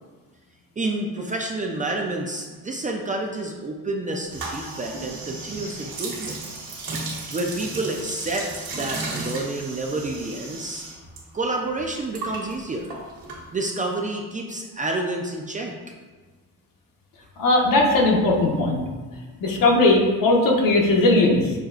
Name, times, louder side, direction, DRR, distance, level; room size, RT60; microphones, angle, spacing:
voice 1, 0.8-6.4 7.3-10.9 11.3-13.0 13.5-15.8, right 2 dB, 25° right, 1 dB, 0.3 m, -29 dB
sound 1, 4.3-11.2 11.5-13.9, right 2 dB, 75° right, 1.2 m, -34 dB
voice 2, 17.4-18.8 19.4-21.5, left 2 dB, 65° left, 0 dB, 0.9 m, -18 dB
6.4 x 2.3 x 2.3 m, 1.4 s
cardioid pair, 90°, 36 cm